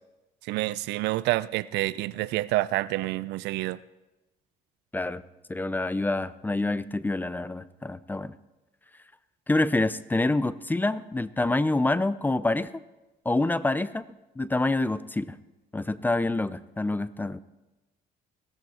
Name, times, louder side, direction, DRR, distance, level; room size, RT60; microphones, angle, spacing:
voice 1, 0.5-3.8, right 17 dB, 85° right, 18 dB, 0.5 m, -28 dB
voice 2, 5.5-8.3 9.5-12.7 13.2-14.0 14.4-15.4 15.7-17.4, left 2 dB, 10° left, 16 dB, 0.5 m, -27 dB
16.5 x 14.0 x 4.3 m, 1.0 s
cardioid pair, 110°, 17 cm